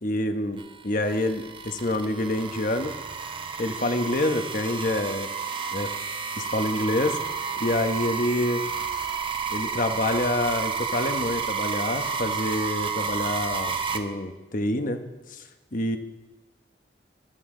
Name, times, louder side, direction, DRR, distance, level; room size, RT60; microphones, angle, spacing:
voice 1, 0.0-2.9 3.6-5.3 5.7-5.9 6.4-7.2 7.6-8.6 9.5-15.0 15.3-15.4 15.7-16.0, left 1 dB, 50° left, 7 dB, 1.2 m, -27 dB
sound 1, 0.6-14.0, right 5 dB, 30° right, 1.0 m, -31 dB
22.0 x 13.5 x 3.9 m, 1.1 s
head